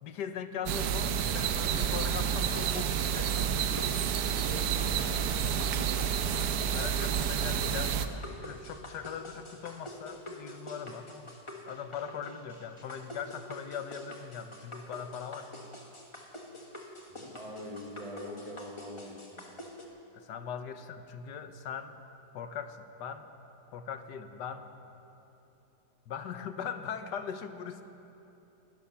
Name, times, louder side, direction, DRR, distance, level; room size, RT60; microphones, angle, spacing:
voice 1, 0.0-3.3 6.7-11.4 11.7-15.5 20.1-21.9 22.3-23.3 23.7-24.7 26.1-27.8, left 7 dB, 75° left, 9 dB, 1.5 m, -40 dB
sound 1, 0.7-8.1, right 8 dB, 70° right, 1.1 m, -29 dB
sound 2, 1.9-19.8, left 1 dB, 20° left, 1.3 m, -47 dB
voice 2, 4.3-5.3 5.6-6.1 17.1-19.5, left 1 dB, 20° right, -1 dB, 1.9 m, -44 dB
19.0 x 12.5 x 5.7 m, 2.9 s
omnidirectional pair, 1.8 m